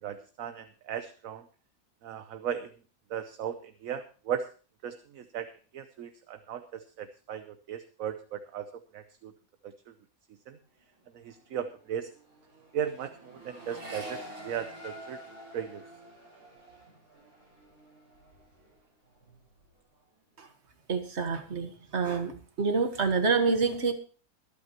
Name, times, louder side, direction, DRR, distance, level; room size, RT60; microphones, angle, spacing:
voice 1, 0.0-1.5 2.0-2.7 3.1-4.5 4.8-9.3 9.6-9.9 10.5-10.6 11.1-12.1 12.7-15.2 15.5-15.8, right 9 dB, 65° right, 10 dB, 1.2 m, -37 dB
Accelerating revving vroom, 10.8-11.0 11.3-18.8 19.1-19.7, right 1 dB, 85° right, 5.8 m, -47 dB
voice 2, 20.9-23.9, right 4 dB, 50° right, 7 dB, 1.8 m, -27 dB
23.5 x 8.8 x 2.9 m, 0.37 s
omnidirectional pair, 1.6 m